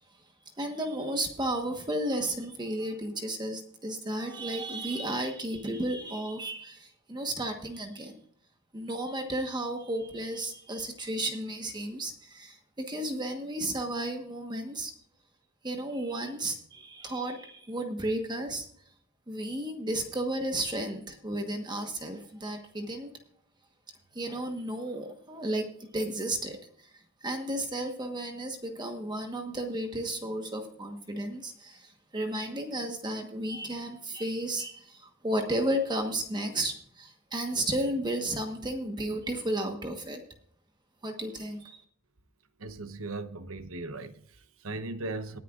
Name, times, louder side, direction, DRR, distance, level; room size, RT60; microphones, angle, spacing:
voice 1, 0.6-8.2 8.7-14.9 15.6-18.7 19.3-23.1 24.1-25.7 25.9-26.9 27.2-40.2 41.0-41.8, right 1 dB, 20° right, 1.3 m, -33 dB
voice 2, 42.6-45.4, right 2 dB, 90° right, 1.0 m, -38 dB
19.5 x 10.0 x 2.5 m
head